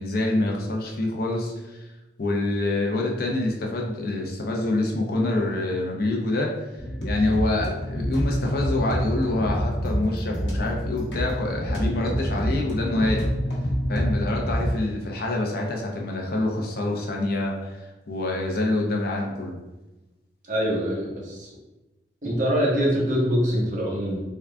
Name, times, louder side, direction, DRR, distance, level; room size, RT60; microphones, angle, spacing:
voice 1, 0.0-1.8 2.2-6.5 7.0-13.3 13.9-19.6, left 2 dB, 55° left, 0 dB, 0.6 m, -26 dB
sound 1, 6.8-14.7, equal, 80° left, 0.9 m, -27 dB
voice 2, 20.5-21.5 22.2-24.2, equal, 45° right, -4 dB, 1.0 m, -24 dB
3.6 x 2.3 x 3.4 m, 1.1 s
head